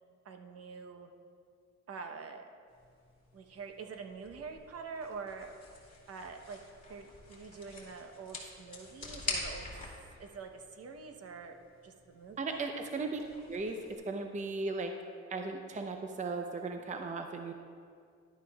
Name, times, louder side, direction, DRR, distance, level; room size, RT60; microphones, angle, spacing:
voice 1, 0.2-1.1 1.9-2.5 3.3-5.5 6.1-6.6 6.9-9.7 10.2-11.6 11.8-12.6, right 5 dB, 50° right, 5 dB, 0.9 m, -45 dB
sound 1, 2.7-14.0, left 2 dB, 25° left, 2.4 m, -46 dB
voice 2, 12.4-13.2 13.5-14.9 15.3-17.5, right 3 dB, 25° right, 5 dB, 0.6 m, -37 dB
11.5 x 9.6 x 2.3 m, 2.2 s
cardioid pair, 90°, 30 cm